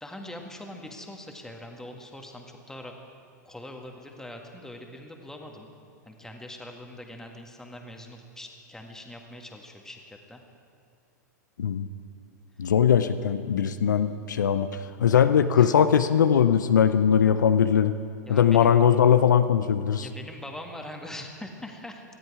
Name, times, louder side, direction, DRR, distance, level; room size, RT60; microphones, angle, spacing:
voice 1, 0.0-3.0 3.5-5.7 6.0-10.4 15.4-15.7 18.3-18.7 20.0-22.0, left 1 dB, 5° left, 3 dB, 1.8 m, -42 dB
voice 2, 12.6-14.7 15.0-17.9 18.3-20.1, left 8 dB, 80° left, 10 dB, 0.6 m, -20 dB
19.0 x 13.0 x 4.8 m, 2.3 s
hypercardioid pair, 105°, 10 cm